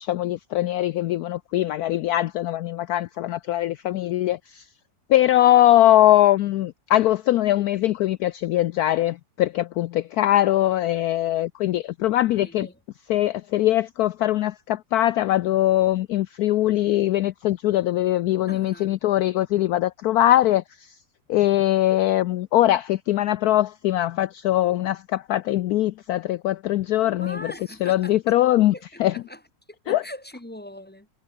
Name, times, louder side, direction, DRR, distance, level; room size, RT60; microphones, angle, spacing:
voice 1, 0.0-4.7 5.1-12.7 13.1-21.0 21.3-27.5 27.8-28.7 29.0-29.1 29.9-30.0, left 14 dB, 70° left, 0.9 m, -21 dB
voice 2, 12.4-12.8 13.1-13.3 18.5-19.0 27.2-28.4 28.7-29.4 29.7-31.1, left 1 dB, 5° left, 1.2 m, -41 dB
omnidirectional pair, 1.9 m